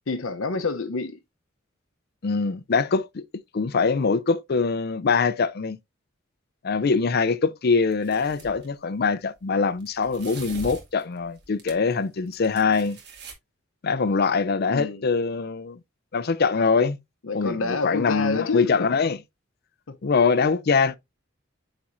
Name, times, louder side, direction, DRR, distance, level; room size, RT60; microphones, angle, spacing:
voice 1, 0.1-1.2 14.7-15.0 17.2-18.8 19.9-20.0, left 4 dB, 80° left, 0.7 m, -28 dB
voice 2, 2.2-3.2 3.5-5.8 6.6-13.0 13.8-15.8 16.1-17.0 17.3-19.2 20.0-21.0, left 4 dB, 50° left, 0.5 m, -23 dB
sound 1, 7.9-8.7 9.8-11.9 12.3-13.3, right 2 dB, 60° right, 2.2 m, -42 dB
9.0 x 4.3 x 2.6 m
head